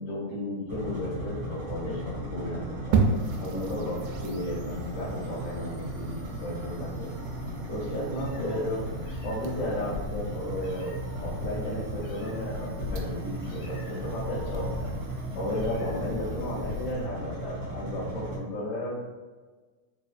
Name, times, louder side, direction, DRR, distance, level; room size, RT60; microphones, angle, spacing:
voice 1, 0.0-3.0 3.4-7.1 7.7-8.9 9.2-10.9 11.2-19.0, left 1 dB, 45° left, -9 dB, 1.8 m, -34 dB
sound 1, 0.7-18.4, right 1 dB, 55° right, 1.4 m, -36 dB
sound 2, 2.9-16.9, right 4 dB, 90° right, 2.2 m, -36 dB
Meow, 7.7-17.1, left 4 dB, 80° left, 1.4 m, -40 dB
5.0 x 2.5 x 2.4 m, 1.4 s
omnidirectional pair, 3.7 m